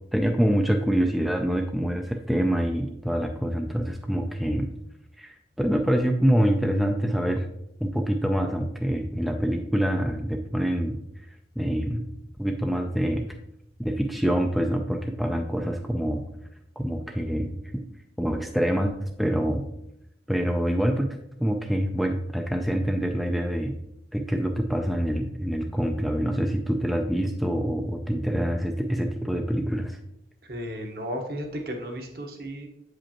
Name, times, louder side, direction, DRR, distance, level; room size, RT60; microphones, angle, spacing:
voice 1, 0.1-4.7 5.2-7.5 7.8-11.0 11.6-12.0 12.4-13.3 13.8-16.2 16.8-17.8 18.2-19.6 20.3-23.7 24.1-30.0, equal, ahead, 3 dB, 0.3 m, -26 dB
voice 2, 30.4-32.7, equal, 55° right, 2 dB, 1.0 m, -34 dB
7.6 x 5.1 x 2.9 m, 0.79 s
head